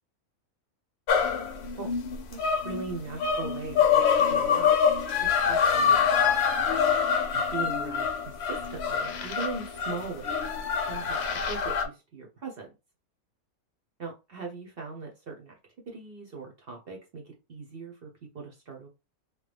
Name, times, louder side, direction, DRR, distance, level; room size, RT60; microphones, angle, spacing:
sound 1, 1.1-11.9, left 7 dB, 60° left, 0.7 m, -25 dB
voice 1, 2.3-4.8 5.2-6.5 7.3-10.4 10.8-11.2 11.5-12.7 14.0-15.6 15.9-18.9, right 4 dB, 50° right, 0 dB, 0.8 m, -40 dB
3.0 x 2.1 x 3.3 m, 0.27 s
omnidirectional pair, 1.5 m